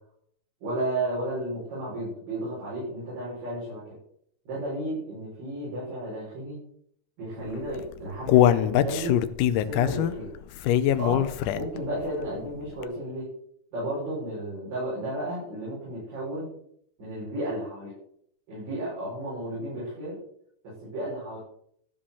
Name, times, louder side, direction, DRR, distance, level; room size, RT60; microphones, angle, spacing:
voice 1, 0.6-3.9 4.5-6.6 7.2-9.2 9.6-10.3 11.0-11.3 11.5-13.3 13.7-16.5 17.0-18.0 18.5-20.2 20.6-21.4, right 1 dB, 90° right, -9 dB, 7.2 m, -33 dB
Human voice, 7.7-11.9 12.3-12.4 12.8-12.9, left 11 dB, 80° left, 2.0 m, -22 dB
14.0 x 5.0 x 6.9 m, 0.67 s
omnidirectional pair, 3.8 m